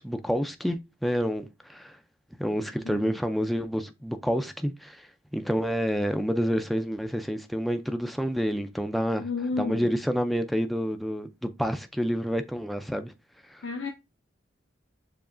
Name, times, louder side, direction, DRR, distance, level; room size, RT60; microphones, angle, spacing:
voice 1, 0.0-2.0 2.4-5.1 5.3-9.3 9.6-13.1 13.5-13.6, equal, ahead, 0.3 m, -28 dB
voice 2, 9.2-9.9 13.6-13.9, left 4 dB, 70° left, 0.6 m, -31 dB
7.0 x 2.8 x 2.5 m
head